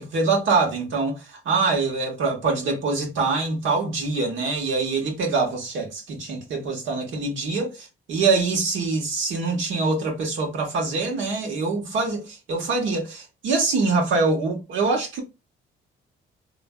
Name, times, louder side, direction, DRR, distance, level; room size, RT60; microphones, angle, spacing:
voice 1, 0.0-15.2, right 3 dB, 75° right, 1.1 m, -24 dB
3.2 x 2.5 x 2.3 m
cardioid pair, 90°, 20 cm